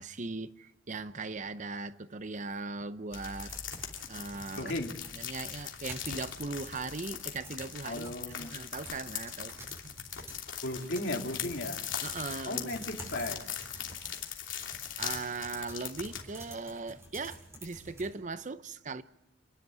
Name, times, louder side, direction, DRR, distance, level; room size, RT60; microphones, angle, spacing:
voice 1, 0.0-3.5 4.1-4.7 5.2-9.9 12.0-12.8 15.0-19.0, right 3 dB, 40° right, 0.7 m, -39 dB
sound 1, 3.1-16.2, left 9 dB, 85° left, 2.9 m, -40 dB
sound 2, 3.3-18.1, right 1 dB, 15° right, 7.4 m, -50 dB
voice 2, 4.6-4.9 7.8-8.6 10.6-11.8 12.5-13.4 13.8-13.9, left 1 dB, 65° left, 2.9 m, -35 dB
28.0 x 11.0 x 9.3 m
head